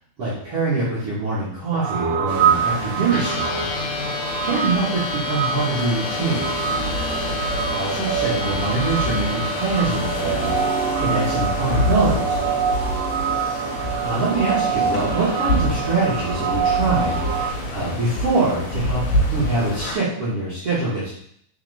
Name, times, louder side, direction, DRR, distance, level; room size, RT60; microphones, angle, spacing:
voice 1, 0.2-4.0 4.4-6.6 7.7-10.5 11.0-12.5 14.0-19.0 19.3-21.2, right 3 dB, 45° right, -9 dB, 2.6 m, -24 dB
sound 1, 1.7-17.5, right 7 dB, 75° right, 2.2 m, -25 dB
sound 2, 2.3-19.9, left 1 dB, 60° left, 3.1 m, -28 dB
sound 3, 3.1-12.4, left 5 dB, 80° left, 2.7 m, -31 dB
8.4 x 5.8 x 3.6 m, 0.67 s
omnidirectional pair, 4.1 m